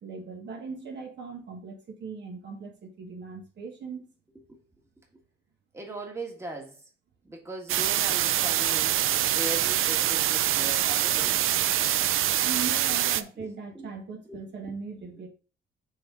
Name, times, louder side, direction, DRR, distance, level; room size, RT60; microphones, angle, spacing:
voice 1, 0.0-4.1 12.4-15.3, right 5 dB, 55° right, 1.6 m, -39 dB
voice 2, 5.7-6.8 7.2-9.0 9.3-11.4 13.4-13.5 13.7-13.9 14.3-14.7, right 1 dB, 15° right, 1.6 m, -39 dB
sound 1, 7.7-13.2, right 12 dB, 80° right, 0.5 m, -25 dB
6.5 x 3.9 x 4.8 m
cardioid pair, 135°, 21 cm